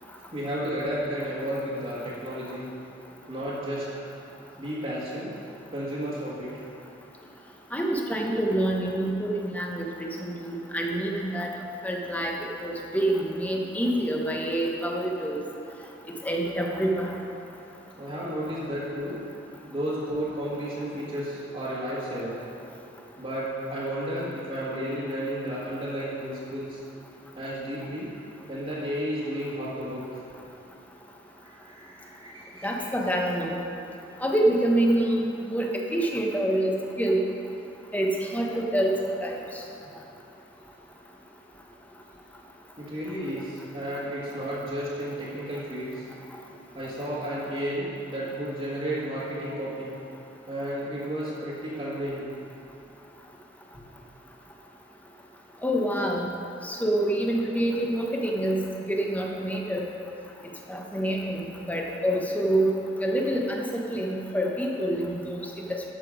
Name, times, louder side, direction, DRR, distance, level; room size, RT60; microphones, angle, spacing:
voice 1, 0.3-2.8 3.3-5.3 5.7-6.6 18.0-19.2 19.7-22.4 23.2-26.8 27.4-28.1 28.5-30.2 31.4-32.9 39.8-39.9 42.8-46.1 46.8-50.0 50.5-52.3 53.7-53.8, equal, 35° right, -11 dB, 1.8 m, -32 dB
voice 2, 7.7-11.5 11.8-12.3 12.6-15.4 16.2-17.1 32.6-33.6 34.2-37.2 37.9-39.6 55.6-56.2 56.6-58.6 58.9-59.8 60.7-62.7 63.0-65.8, right 1 dB, 10° left, 0 dB, 1.0 m, -26 dB
12.0 x 6.8 x 5.0 m, 2.7 s
head